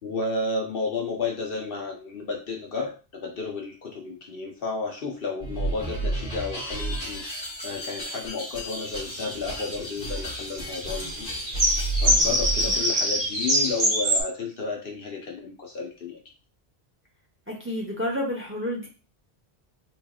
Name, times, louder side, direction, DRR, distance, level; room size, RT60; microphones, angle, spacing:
voice 1, 0.0-11.3 12.0-16.2, left 4 dB, 65° left, 0 dB, 1.1 m, -32 dB
sound 1, 5.4-12.9, right 1 dB, 40° left, 1.4 m, -32 dB
sound 2, 8.9-14.2, equal, 70° right, 1.4 m, -25 dB
voice 2, 17.5-18.9, left 1 dB, 15° right, -1 dB, 0.8 m, -30 dB
3.8 x 3.2 x 2.4 m, 0.34 s
omnidirectional pair, 1.0 m